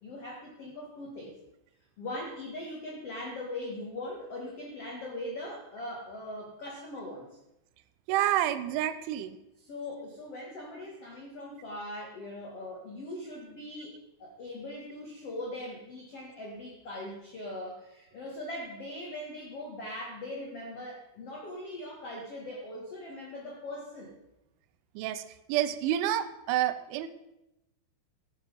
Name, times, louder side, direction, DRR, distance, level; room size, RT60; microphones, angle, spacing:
voice 1, 0.0-1.4 2.0-7.4 9.6-24.1, left 1 dB, 70° left, -1 dB, 1.4 m, -40 dB
voice 2, 8.1-9.4 25.0-25.2 25.5-27.1, right 12 dB, 85° right, 12 dB, 3.1 m, -28 dB
15.5 x 7.5 x 5.4 m, 0.91 s
omnidirectional pair, 5.5 m